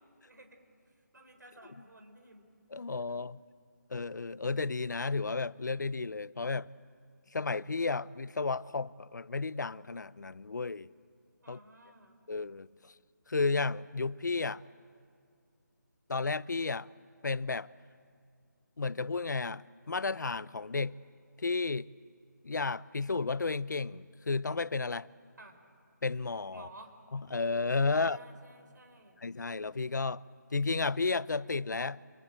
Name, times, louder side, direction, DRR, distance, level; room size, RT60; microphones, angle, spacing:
voice 1, 0.2-0.6 1.1-2.5 3.1-3.2 11.4-12.2 25.4-25.6 26.5-26.9 27.8-29.2, right 2 dB, 75° right, 4.6 m, -54 dB
voice 2, 2.7-3.4 3.9-6.7 7.3-10.9 11.5-11.6 12.3-12.9 13.3-14.6 16.1-16.9 17.2-17.7 18.8-20.9 21.4-21.9 22.4-25.1 26.0-26.7 27.1-28.2 29.2-30.2 30.5-32.0, left 4 dB, 75° left, 0.7 m, -32 dB
27.0 x 23.5 x 8.8 m
figure-of-eight pair, 180°, 10 cm